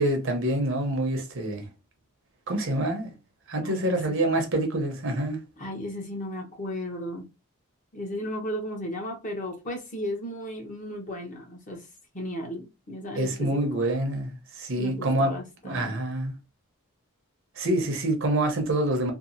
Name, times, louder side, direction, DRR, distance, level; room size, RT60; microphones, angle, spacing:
voice 1, 0.0-1.7 2.5-3.1 3.5-5.4 13.2-15.3 15.6-16.3 17.6-19.1, right 1 dB, 60° right, 0.7 m, -26 dB
voice 2, 3.6-4.2 5.6-7.3 7.9-11.8 12.1-13.8 14.8-16.0, left 1 dB, 35° left, 0.8 m, -35 dB
2.8 x 2.3 x 2.5 m
head